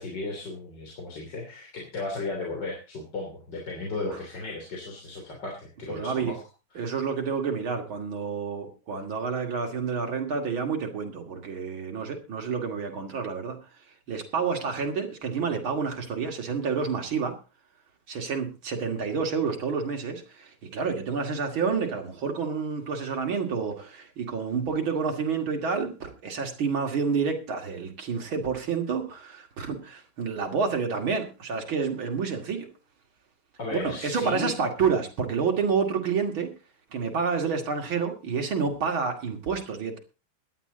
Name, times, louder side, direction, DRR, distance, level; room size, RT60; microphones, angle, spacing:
voice 1, 0.0-6.4 33.6-34.5, left 3 dB, 60° left, 1 dB, 3.7 m, -35 dB
voice 2, 5.9-6.3 6.7-13.6 14.1-17.3 18.1-32.7 33.7-36.5 36.9-40.0, right 5 dB, 85° right, 3 dB, 3.2 m, -29 dB
17.0 x 11.5 x 3.9 m, 0.32 s
omnidirectional pair, 2.2 m